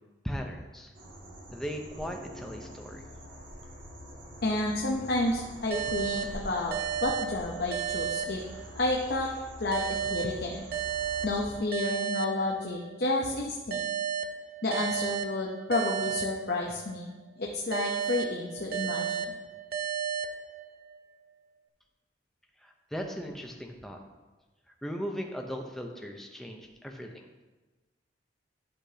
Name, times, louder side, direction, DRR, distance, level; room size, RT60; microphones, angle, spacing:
voice 1, 0.2-0.9 1.5-3.0 22.6-24.0 24.8-27.3, equal, ahead, 2 dB, 0.6 m, -38 dB
sound 1, 0.9-11.6, equal, 75° right, 1.8 m, -45 dB
voice 2, 4.4-6.8 7.0-8.4 8.7-9.3 9.6-10.7 11.2-13.8 14.6-19.3, left 2 dB, 55° left, -1 dB, 0.8 m, -31 dB
sound 2, 5.7-9.0 9.7-13.0 13.7-17.0 17.7-21.0, right 8 dB, 55° right, 0.5 m, -34 dB
11.5 x 5.9 x 2.8 m, 1.2 s
head